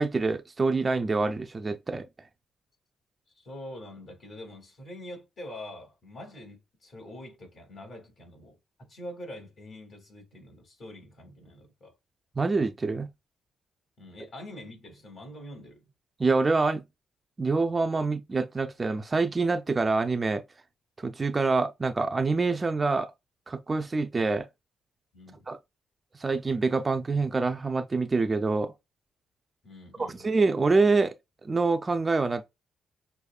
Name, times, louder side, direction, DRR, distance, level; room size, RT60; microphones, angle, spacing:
voice 1, 0.0-2.1 12.4-13.1 16.2-16.8 17.4-20.4 21.0-23.1 23.5-24.5 25.5-25.6 26.2-28.7 30.0-31.2 31.4-32.5, right 3 dB, 25° right, 0.4 m, -26 dB
voice 2, 3.3-11.9 14.0-15.9 25.1-25.5 29.6-30.3, left 1 dB, 50° left, 2.5 m, -45 dB
6.3 x 2.6 x 2.4 m
cardioid pair, 90°, 0 cm